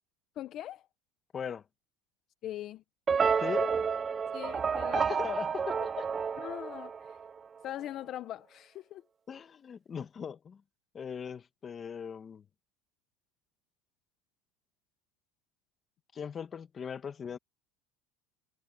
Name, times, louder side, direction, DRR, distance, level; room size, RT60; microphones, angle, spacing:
voice 1, 0.4-0.8 2.4-2.8 4.3-5.0 6.4-7.2 7.6-9.0, left 12 dB, 40° left, 0.7 m, -41 dB
sound 1, 3.1-7.4, right 6 dB, 20° right, 0.6 m, -30 dB
voice 2, 3.4-3.7 4.9-6.1 9.3-10.6 10.9-12.4 16.1-17.4, left 7 dB, 25° left, 1.7 m, -39 dB
supercardioid pair, 150°, 0 cm